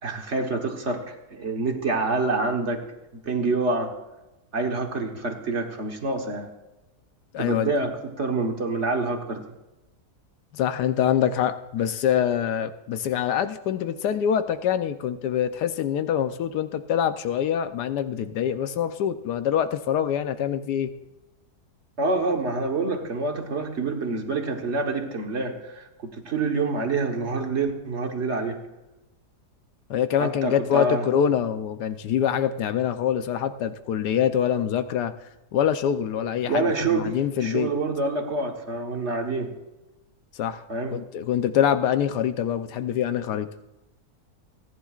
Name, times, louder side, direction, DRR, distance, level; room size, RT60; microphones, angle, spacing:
voice 1, 0.0-2.8 3.1-3.9 4.5-6.5 7.4-9.4 22.0-28.6 30.2-31.1 36.5-37.1 37.4-39.5 40.7-41.0, right 3 dB, 45° right, 3 dB, 1.5 m, -27 dB
voice 2, 7.3-7.7 10.5-20.9 29.9-35.1 35.5-37.7 40.4-40.6 40.9-43.5, left 9 dB, 90° left, 10 dB, 1.3 m, -25 dB
29.5 x 10.5 x 2.4 m, 1.0 s
omnidirectional pair, 1.7 m